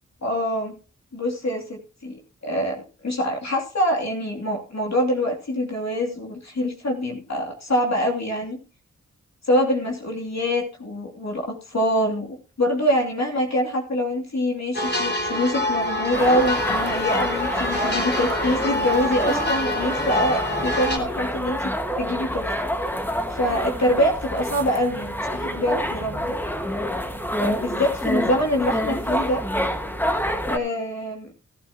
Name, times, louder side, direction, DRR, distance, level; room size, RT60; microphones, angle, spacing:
voice 1, 0.2-0.7 1.1-8.6 9.4-26.4 27.4-29.5 30.5-31.3, equal, 60° left, 0 dB, 2.9 m, -25 dB
sound 1, 14.7-21.0, left 1 dB, 35° left, 3.2 m, -26 dB
sound 2, 16.1-30.6, equal, 5° left, 1.7 m, -27 dB
16.5 x 11.5 x 2.9 m, 0.34 s
cardioid pair, 50°, 31 cm